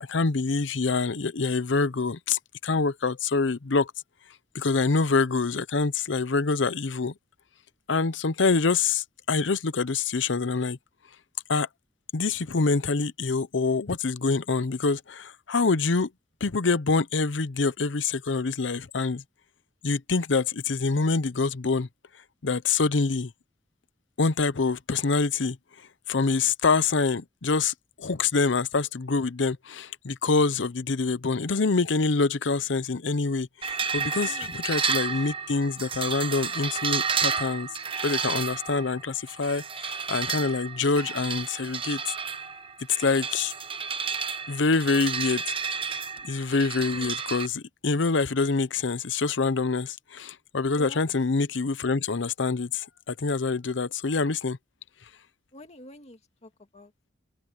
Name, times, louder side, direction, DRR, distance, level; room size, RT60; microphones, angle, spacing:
voice 1, 0.1-3.9 4.5-7.1 7.9-10.8 11.5-11.7 12.1-16.1 16.4-19.2 19.8-21.9 22.4-23.3 24.2-25.6 26.1-37.7 38.0-42.1 43.0-43.5 44.5-45.4 46.2-54.6, left 4 dB, 70° left, 0.7 m, -26 dB
voice 2, 30.3-30.7 34.3-34.5 34.8-34.9 46.8-47.2 50.8-51.0 55.5-57.1, left 1 dB, 35° left, 2.3 m, -48 dB
sound 1, 33.6-47.5, right 6 dB, 30° right, 1.1 m, -31 dB
head